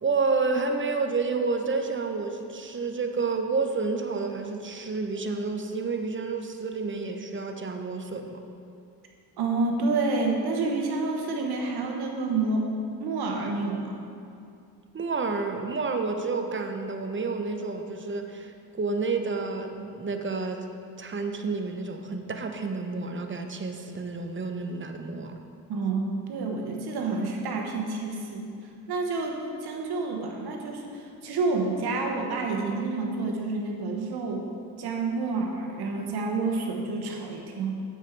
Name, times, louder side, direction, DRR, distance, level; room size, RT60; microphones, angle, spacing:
voice 1, 0.0-8.4 14.9-20.7 21.0-25.3, right 4 dB, 30° right, 5 dB, 0.8 m, -30 dB
voice 2, 9.4-12.7 13.0-14.0 25.7-28.5 28.9-34.5 34.8-37.8, right 3 dB, 85° right, 1 dB, 1.2 m, -29 dB
7.4 x 5.4 x 6.0 m, 2.5 s
cardioid pair, 70°, 38 cm